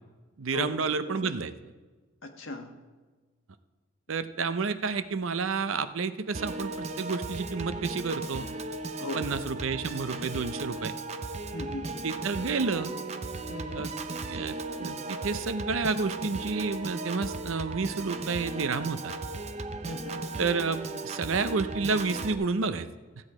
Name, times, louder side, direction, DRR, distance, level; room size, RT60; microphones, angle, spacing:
voice 1, 0.4-1.5 4.1-8.5 9.1-10.9 12.0-12.9 13.7-13.9 14.3-19.1 20.4-22.9, right 4 dB, 80° right, 12 dB, 0.6 m, -30 dB
voice 2, 2.2-2.7 9.0-9.3 11.5-11.9 13.5-13.9 19.8-20.2, left 2 dB, 80° left, 4 dB, 1.4 m, -38 dB
Piano / Organ, 6.3-22.3, right 2 dB, 30° right, 0.6 m, -36 dB
15.0 x 8.5 x 4.9 m, 1.3 s
head